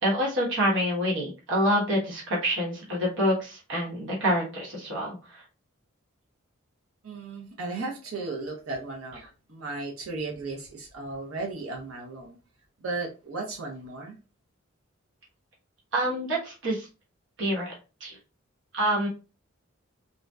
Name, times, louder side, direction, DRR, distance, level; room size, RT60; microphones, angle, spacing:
voice 1, 0.0-5.4 15.9-16.9 17.4-17.7 18.0-18.2 18.7-19.1, equal, 60° right, 1.1 m, -27 dB
voice 2, 7.0-9.2 9.5-12.4 12.8-14.2, right 3 dB, 90° right, 0.7 m, -35 dB
2.6 x 2.2 x 2.2 m
head